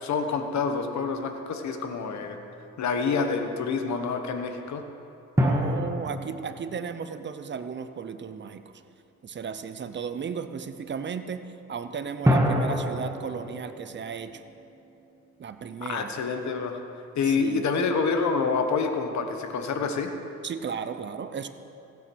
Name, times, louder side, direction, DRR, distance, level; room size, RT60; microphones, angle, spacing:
voice 1, 0.0-2.4 2.8-4.8 15.9-16.8 17.1-20.1, left 5 dB, 65° left, 6 dB, 1.4 m, -27 dB
sound 1, 5.4-8.2 12.2-15.5, equal, 10° right, 1.6 m, -28 dB
voice 2, 5.4-8.6 9.2-14.4 15.4-16.1 17.3-17.7 20.4-21.5, right 6 dB, 40° right, 10 dB, 0.8 m, -35 dB
15.5 x 8.6 x 6.3 m, 2.7 s
cardioid pair, 90°, 30 cm